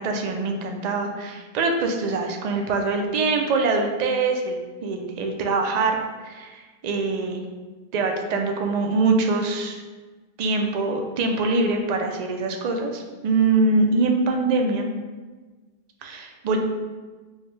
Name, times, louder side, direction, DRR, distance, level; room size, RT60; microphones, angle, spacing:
voice 1, 0.0-7.4 7.9-9.8 10.4-14.9 16.0-16.6, right 3 dB, 55° right, 3 dB, 0.5 m, -24 dB
4.7 x 2.1 x 3.1 m, 1.3 s
omnidirectional pair, 1.0 m